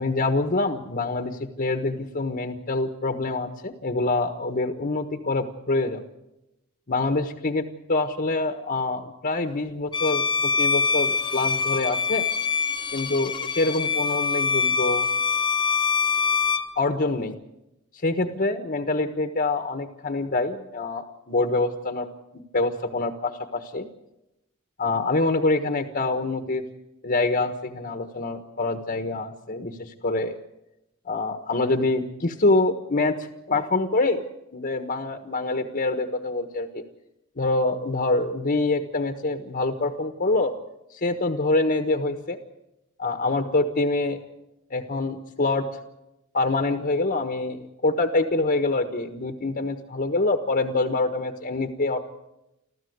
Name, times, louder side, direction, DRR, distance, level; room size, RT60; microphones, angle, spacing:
voice 1, 0.0-6.0 6.9-12.3 12.9-15.1 16.8-17.4 18.0-22.1 22.5-23.9 24.8-26.6 27.0-30.4 31.0-34.2 34.5-36.8 37.4-40.5 40.9-42.4 43.0-44.2 44.7-45.7 46.3-52.0, left 2 dB, 45° left, 6 dB, 1.4 m, -25 dB
Bowed string instrument, 9.9-16.7, left 5 dB, 20° left, 1.2 m, -24 dB
26.0 x 15.0 x 8.1 m, 0.91 s
head